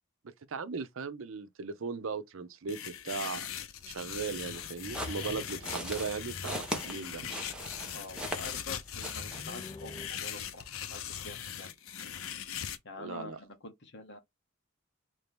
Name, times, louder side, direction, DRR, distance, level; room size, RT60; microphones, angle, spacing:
voice 1, 0.5-3.5 3.9-7.3 13.0-13.4, right 5 dB, 80° right, 0.6 m, -38 dB
sound 1, 2.7-12.8, left 9 dB, 85° left, 0.6 m, -40 dB
sound 2, 3.8-10.1, left 2 dB, 20° left, 0.4 m, -49 dB
sound 3, 4.5-8.7 9.0-9.4, equal, 5° right, 0.9 m, -40 dB
voice 2, 7.9-11.7 12.8-14.2, left 2 dB, 60° left, 1.0 m, -47 dB
3.3 x 2.7 x 3.5 m
head